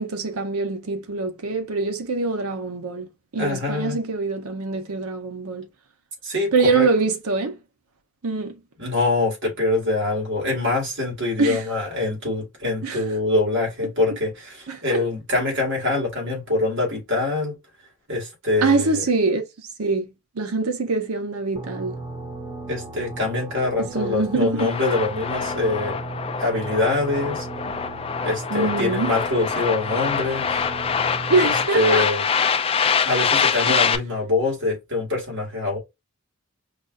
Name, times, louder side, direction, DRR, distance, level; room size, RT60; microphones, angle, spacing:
voice 1, 0.0-5.7 6.5-7.6 8.2-8.5 11.4-11.6 12.8-13.0 14.7-15.0 18.6-20.1 20.4-21.9 23.8-24.7 28.5-29.1 31.3-32.1 33.7-33.8, right 3 dB, 85° right, 0.8 m, -24 dB
voice 2, 3.3-4.0 6.2-6.9 8.8-17.5 18.1-19.0 22.7-26.0 26.4-27.5 28.2-30.7 31.4-32.2 33.0-35.8, left 2 dB, 60° right, 2.1 m, -24 dB
sound 1, 21.6-31.7, right 2 dB, 15° right, 0.6 m, -36 dB
sound 2, 24.6-34.0, left 6 dB, 25° left, 0.4 m, -24 dB
5.1 x 2.4 x 2.5 m
head